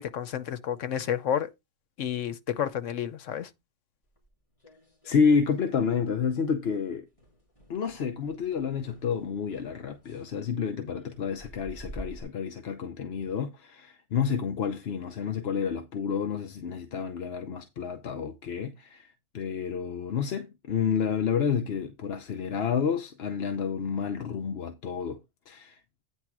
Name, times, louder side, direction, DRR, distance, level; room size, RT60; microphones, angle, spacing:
voice 1, 0.0-1.5 2.0-3.5, left 9 dB, 90° left, 1.2 m, -30 dB
sound 1, 4.2-5.6 5.9-6.2 6.5-6.7 7.1-12.2, right 1 dB, 25° left, 3.1 m, -49 dB
voice 2, 5.0-7.1 7.7-25.2 25.5-25.8, left 6 dB, 60° left, 1.0 m, -29 dB
9.4 x 3.6 x 6.0 m
omnidirectional pair, 1.2 m